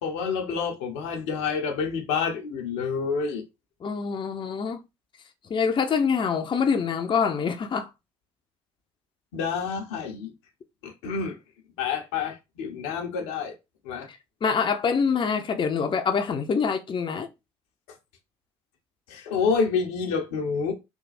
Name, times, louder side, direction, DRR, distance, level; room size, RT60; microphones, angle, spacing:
voice 1, 0.0-3.4 9.3-10.3 10.8-11.4 11.8-13.5 13.8-14.1 19.1-20.7, left 5 dB, 80° left, 0.9 m, -28 dB
voice 2, 3.8-4.8 5.5-7.9 14.1-17.3, left 6 dB, 40° left, 0.7 m, -25 dB
3.5 x 2.3 x 4.1 m
hypercardioid pair, 60°, 13 cm